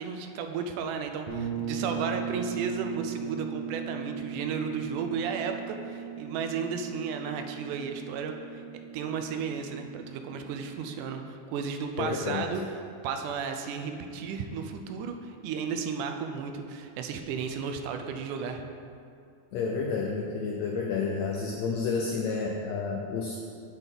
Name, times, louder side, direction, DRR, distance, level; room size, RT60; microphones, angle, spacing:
voice 1, 0.0-8.6 8.9-12.6 13.0-18.6, right 6 dB, 80° right, 5 dB, 2.0 m, -34 dB
sound 1, 1.3-10.9, right 6 dB, 65° right, 1.7 m, -38 dB
voice 2, 12.0-12.5 19.5-23.4, left 4 dB, 85° left, 0 dB, 1.5 m, -30 dB
8.9 x 4.0 x 5.9 m, 2.4 s
omnidirectional pair, 3.7 m